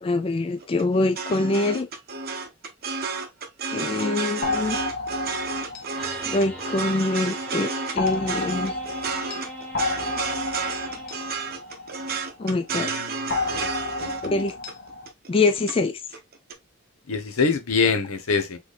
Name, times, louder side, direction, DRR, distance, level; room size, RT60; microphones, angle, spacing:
voice 1, 0.0-1.9 3.7-4.8 6.2-8.8 12.4-12.9 14.3-14.5 15.3-16.0, left 2 dB, 25° left, 0.3 m, -24 dB
sound 1, 0.6-15.8 16.1-16.5, right 4 dB, 45° right, 0.8 m, -31 dB
sound 2, 4.4-7.2 8.0-12.5 13.3-15.1, left 3 dB, 45° left, 0.7 m, -31 dB
sound 3, 6.0-11.8, equal, 5° left, 1.1 m, -40 dB
voice 2, 12.7-13.7 14.0-14.4 17.1-18.6, left 5 dB, 80° left, 0.9 m, -25 dB
4.1 x 3.5 x 3.2 m
head